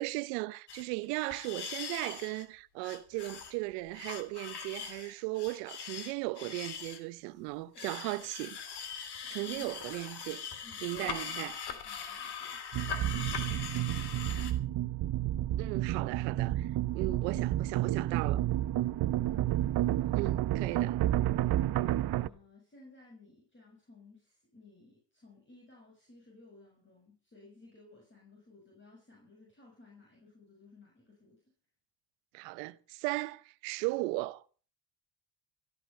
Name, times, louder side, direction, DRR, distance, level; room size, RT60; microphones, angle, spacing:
voice 1, 0.0-8.6 9.3-10.5 10.8-11.6 15.6-18.4 20.2-21.0 32.3-34.4, right 21 dB, 80° right, 1.0 m, -37 dB
sound 1, 0.7-0.8 1.1-2.4 2.8-3.5 3.9-7.0 7.8-14.5, left 7 dB, 50° left, 3.1 m, -41 dB
voice 2, 9.2-9.8 10.6-11.4 11.7-12.6 13.0-14.4 19.1-20.1 21.4-21.7 22.1-31.4, left 3 dB, 25° left, 6.7 m, -57 dB
sound 2, 12.7-22.3, right 13 dB, 50° right, 0.9 m, -30 dB
16.0 x 13.5 x 5.6 m
hypercardioid pair, 70°, 49 cm